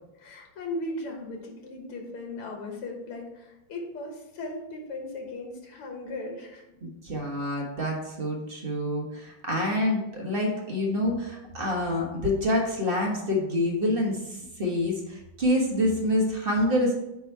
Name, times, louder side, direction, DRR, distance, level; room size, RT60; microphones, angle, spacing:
voice 1, 0.2-6.6, left 2 dB, 85° left, 1 dB, 2.3 m, -37 dB
voice 2, 6.8-16.9, left 1 dB, 35° right, 0 dB, 0.9 m, -27 dB
8.9 x 3.6 x 4.5 m, 0.91 s
omnidirectional pair, 2.4 m